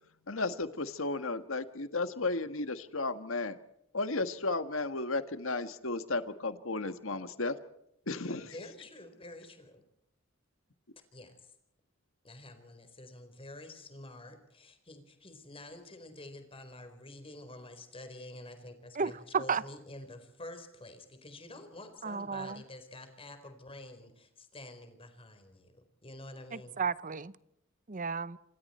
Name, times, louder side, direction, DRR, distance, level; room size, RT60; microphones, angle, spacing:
voice 1, 0.3-3.6 3.9-7.6 8.1-8.7, left 3 dB, 75° left, 10 dB, 1.7 m, -34 dB
voice 2, 8.5-9.8 11.1-11.5 12.2-26.8, left 1 dB, 25° left, 7 dB, 4.3 m, -48 dB
voice 3, 19.0-19.6 22.0-22.6 26.8-27.3 27.9-28.4, right 5 dB, 40° right, 17 dB, 0.9 m, -32 dB
27.5 x 27.0 x 4.4 m, 0.77 s
head